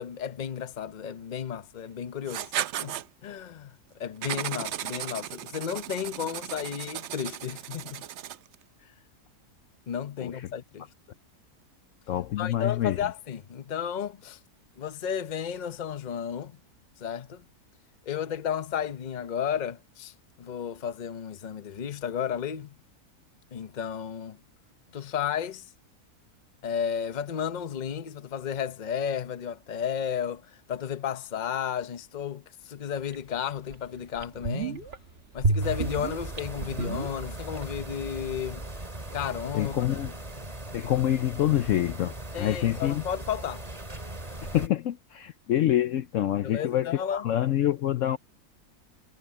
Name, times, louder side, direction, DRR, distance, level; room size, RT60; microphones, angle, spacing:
voice 1, 0.0-2.5 2.8-8.1 9.9-10.9 12.4-14.4 14.8-16.6 17.0-17.4 18.1-22.8 23.5-24.4 24.9-25.7 26.6-34.9 35.3-38.6 39.1-39.9 42.3-43.6 46.4-47.2, left 8 dB, 40° left, 0.8 m, -33 dB
Writing, 2.3-3.1 4.2-8.6, right 11 dB, 65° right, 0.7 m, -35 dB
voice 2, 12.1-13.0 39.5-40.1 40.7-43.1 44.4-48.2, left 12 dB, 70° left, 0.9 m, -26 dB
sound 1, 33.1-33.2 33.7-33.8 34.2-35.0 35.4-37.6 37.9-38.0, right 3 dB, 45° right, 1.4 m, -29 dB
sound 2, 35.6-44.7, right 1 dB, 25° right, 2.5 m, -39 dB
omnidirectional pair, 1.6 m